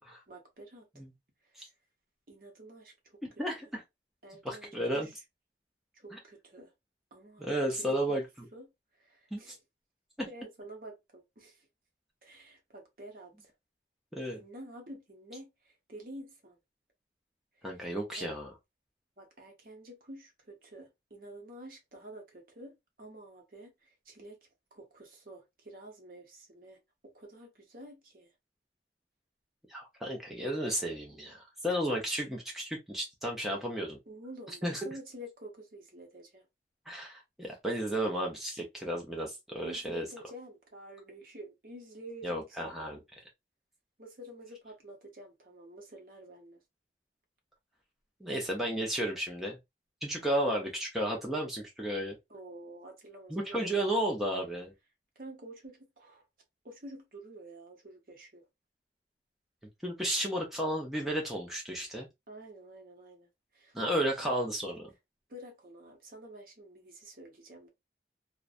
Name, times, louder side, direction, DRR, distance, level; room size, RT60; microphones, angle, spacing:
voice 1, 0.3-1.0 2.3-3.4 4.2-5.2 5.9-6.7 7.1-8.2 8.5-8.7 9.0-9.6 10.3-11.7 12.2-13.5 14.3-16.6 17.6-18.3 19.2-24.4 24.7-28.3 34.1-36.5 39.6-42.7 44.0-46.6 50.5-50.7 52.3-54.1 55.2-56.2 56.6-58.4 62.3-63.8 64.2-64.5 65.3-67.7, right 1 dB, 50° right, 0.8 m, -49 dB
voice 2, 3.4-3.8 4.4-5.1 7.4-8.5 9.3-9.5 10.2-10.3 14.1-14.4 17.6-18.5 29.7-34.0 34.6-34.9 36.9-40.1 42.2-43.0 48.2-49.6 50.0-52.2 53.3-54.7 59.8-62.1 63.7-64.9, right 1 dB, ahead, 0.5 m, -33 dB
2.5 x 2.1 x 2.4 m
head